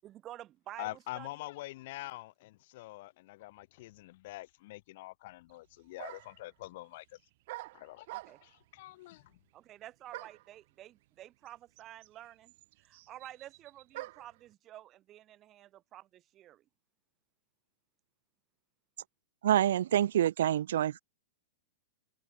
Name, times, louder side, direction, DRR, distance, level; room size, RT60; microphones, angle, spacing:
voice 1, 0.0-0.9 1.1-1.3 8.1-8.4 9.5-12.5 12.8-16.6, right 13 dB, 25° right, 5.8 m, -50 dB
voice 2, 0.8-7.2 7.7-8.1 8.4-9.4, left 18 dB, 45° left, 1.5 m, -45 dB
sound 1, 5.5-5.6 6.0-6.5 7.5-8.6 10.1-10.5 11.5-11.6 11.8-14.4, right 19 dB, 45° right, 2.9 m, -46 dB
voice 3, 19.4-21.0, right 11 dB, 70° right, 0.5 m, -27 dB
supercardioid pair, 160°, 0 cm